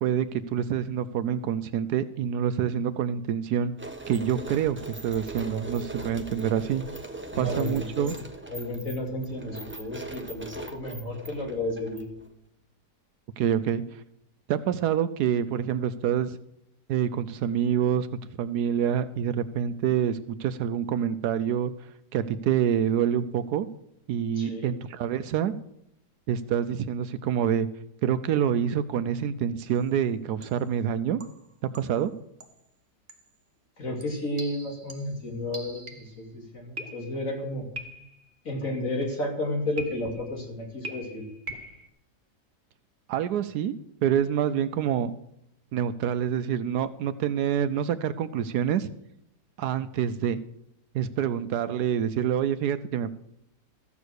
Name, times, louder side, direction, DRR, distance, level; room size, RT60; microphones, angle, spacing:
voice 1, 0.0-3.7 4.1-6.8 7.4-8.1 13.4-14.0 14.5-16.4 16.9-18.1 18.4-21.7 22.1-23.7 24.1-25.5 26.3-27.7 28.0-31.2 31.8-32.1 43.1-43.7 44.0-45.1 45.7-48.9 49.6-50.4 50.9-53.1, right 9 dB, 75° right, 12 dB, 1.1 m, -26 dB
sound 1, 3.8-12.3, right 2 dB, 10° right, 0.8 m, -40 dB
voice 2, 7.3-8.1 8.5-12.1 24.4-24.7 33.8-37.7 38.4-41.3, left 1 dB, 50° left, 1 dB, 2.8 m, -32 dB
sound 2, 29.7-30.0 30.4-30.7 31.2-32.1 32.4-32.7 33.1-33.3 34.0-36.3 36.8-37.3 37.8-38.3 39.8-40.3 40.8-41.9, right 1 dB, 35° right, 1.1 m, -42 dB
14.0 x 7.2 x 6.4 m, 0.78 s
omnidirectional pair, 1.8 m